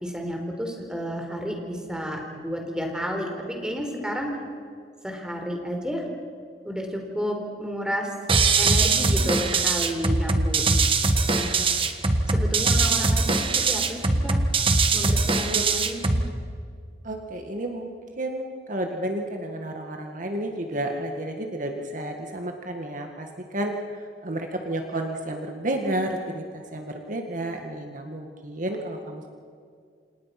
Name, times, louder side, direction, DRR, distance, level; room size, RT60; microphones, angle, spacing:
voice 1, 0.0-4.3 5.0-6.0 6.6-8.1 8.6-10.6 11.3-11.6 12.3-14.4 14.9-16.0, equal, 5° right, 2 dB, 4.3 m, -31 dB
sound 1, 8.3-16.3, right 3 dB, 30° right, 1.6 m, -22 dB
voice 2, 11.4-11.8 15.5-15.6 17.0-23.8 24.2-29.3, right 1 dB, 50° right, 3 dB, 2.0 m, -31 dB
29.5 x 27.5 x 6.1 m, 2.2 s
head